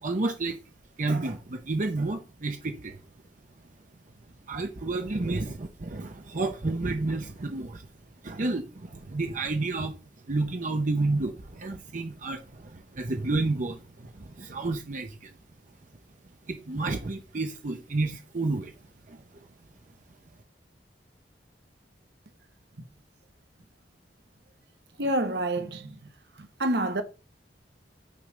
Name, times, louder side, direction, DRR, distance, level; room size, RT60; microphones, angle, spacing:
voice 1, 0.0-0.6 1.0-3.0 4.5-7.8 8.2-9.9 10.3-15.3 16.5-18.7 19.1-19.2, right 2 dB, 45° right, 0.7 m, -30 dB
voice 2, 25.0-25.9 26.6-27.0, right 1 dB, 70° right, 1.1 m, -27 dB
9.2 x 3.3 x 5.1 m
head